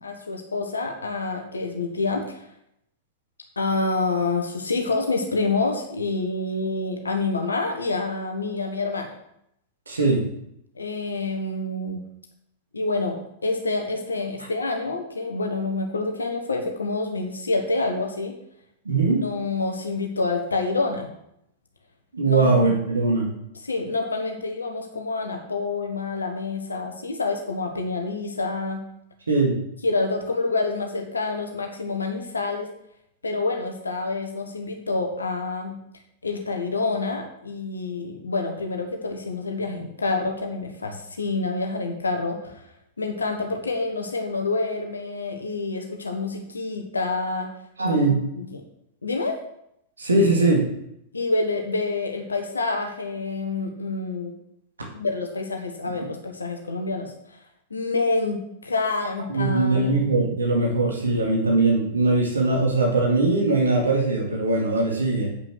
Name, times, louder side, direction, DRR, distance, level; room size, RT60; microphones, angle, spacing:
voice 1, 0.0-2.4 3.6-9.1 10.7-12.0 12.7-18.3 19.1-21.1 22.2-22.5 23.6-28.8 29.8-32.7 33.2-35.7 36.2-42.7 43.0-47.5 48.4-48.6 49.0-49.4 51.1-54.3 54.9-57.1 57.7-60.0, left 3 dB, 75° left, 3 dB, 1.3 m, -27 dB
voice 2, 9.9-10.2 18.9-19.3 22.1-23.3 29.3-29.6 47.8-48.2 50.0-50.6 59.3-65.3, right 2 dB, 75° right, 0 dB, 2.2 m, -21 dB
8.4 x 6.1 x 6.3 m, 0.76 s
figure-of-eight pair, 95°, 0 cm